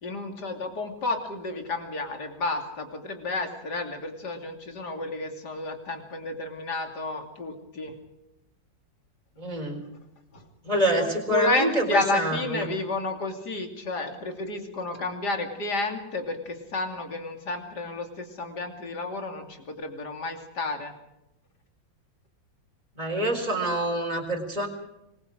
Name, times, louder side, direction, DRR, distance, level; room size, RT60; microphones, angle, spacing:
voice 1, 0.0-7.9 10.3-10.4 11.0-20.9, left 2 dB, 60° left, 4 dB, 3.3 m, -31 dB
voice 2, 9.4-9.8 10.6-12.7 23.0-24.7, right 1 dB, 20° right, 2 dB, 4.4 m, -26 dB
26.0 x 22.0 x 5.0 m, 0.89 s
omnidirectional pair, 2.0 m